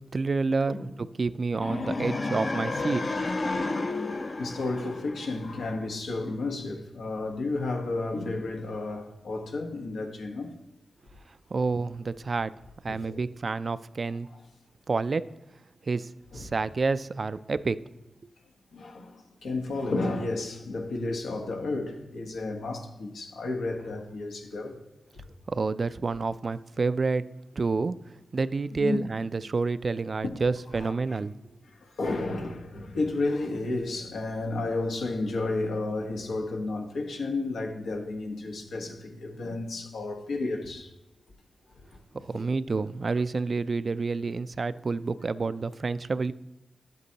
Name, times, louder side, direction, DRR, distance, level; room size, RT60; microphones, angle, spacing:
voice 1, 0.1-3.0 11.5-12.5 12.8-14.3 14.9-15.2 15.8-17.8 25.5-27.2 27.6-28.0 28.3-31.5 42.1-46.3, right 4 dB, 50° right, 0.3 m, -29 dB
sound 1, 1.5-5.7, left 3 dB, 45° left, 0.7 m, -31 dB
voice 2, 4.0-10.5 12.9-13.2 16.3-16.5 18.7-24.8 28.7-29.0 30.7-31.2 31.7-40.9 42.3-42.5, left 2 dB, 85° left, 1.2 m, -32 dB
11.0 x 8.0 x 2.8 m
cardioid pair, 55°, 0 cm